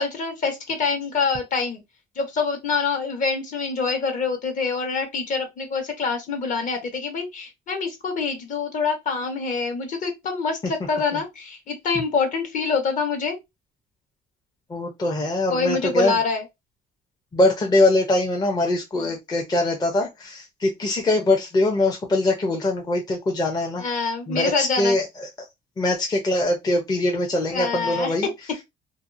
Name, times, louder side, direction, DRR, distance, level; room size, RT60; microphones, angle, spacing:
voice 1, 0.0-1.8 2.2-13.4 15.5-16.4 18.9-19.1 23.8-25.0 27.5-28.1, left 4 dB, 50° left, 1.1 m, -25 dB
voice 2, 14.7-16.2 17.3-23.8 24.3-25.3 25.8-28.3, left 2 dB, 25° left, 0.6 m, -22 dB
2.6 x 2.3 x 2.5 m
cardioid pair, 110°, 17 cm